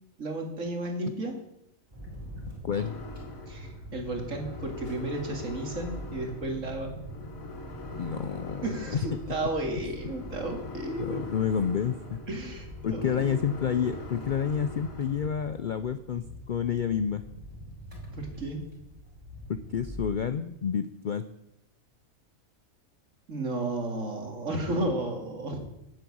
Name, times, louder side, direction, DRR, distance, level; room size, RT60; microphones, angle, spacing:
voice 1, 0.2-1.4 3.5-6.9 8.6-11.2 12.3-13.4 18.1-18.6 23.3-25.6, right 1 dB, 65° right, 3 dB, 2.6 m, -33 dB
sound 1, 1.9-20.1, equal, 25° right, 4.9 m, -44 dB
voice 2, 2.6-3.0 8.0-8.7 11.0-12.2 12.8-17.2 19.5-21.2, left 7 dB, 60° left, 11 dB, 0.5 m, -29 dB
sound 2, 2.7-15.3, left 3 dB, 80° left, 2.2 m, -44 dB
10.5 x 7.7 x 8.5 m, 0.87 s
omnidirectional pair, 1.4 m